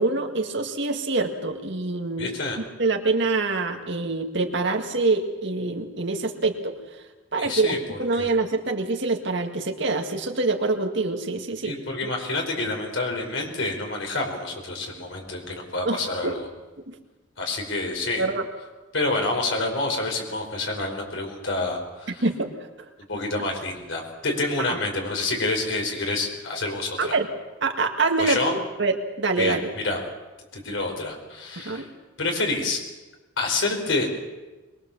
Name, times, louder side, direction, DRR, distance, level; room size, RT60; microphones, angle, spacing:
voice 1, 0.0-2.3 2.8-6.8 7.3-11.8 15.8-16.4 16.9-17.0 18.2-18.4 22.2-22.5 24.7-24.8 27.0-27.3 27.6-29.7 31.6-31.9, right 3 dB, 60° right, 5 dB, 2.1 m, -25 dB
voice 2, 2.2-2.6 7.4-8.3 11.6-16.5 17.4-18.2 18.9-22.3 23.1-27.2 28.2-28.5 29.4-30.0 30.5-31.9 32.2-32.8 33.4-34.1, left 2 dB, 65° left, 2 dB, 5.1 m, -28 dB
23.0 x 22.0 x 7.3 m, 1.2 s
head